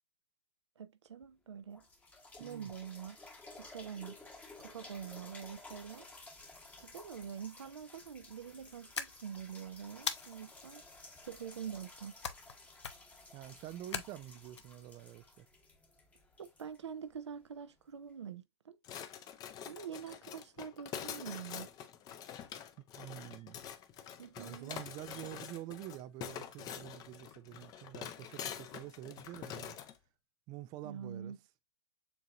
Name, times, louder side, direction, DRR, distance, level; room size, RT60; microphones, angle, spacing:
voice 1, 0.8-1.8 2.4-3.2 3.6-4.2 4.6-6.1 6.8-10.9 11.3-12.2 16.4-18.8 19.6-21.7 24.2-24.7 30.8-31.4, right 8 dB, 80° right, 0.7 m, -45 dB
sound 1, 1.2-1.3 1.7-17.5 18.1-18.2, left 2 dB, 10° left, 1.0 m, -55 dB
voice 2, 2.4-2.7 13.3-15.5 22.9-23.6 24.4-29.8 30.5-31.4, right 13 dB, 30° right, 0.4 m, -47 dB
sound 2, 8.9-9.5 10.1-10.7 12.2-12.6 12.8-13.2 13.9-14.6, left 7 dB, 80° left, 0.7 m, -40 dB
sound 3, 18.8-30.0, left 9 dB, 25° left, 0.7 m, -46 dB
7.0 x 2.9 x 2.4 m
hypercardioid pair, 120°, 14 cm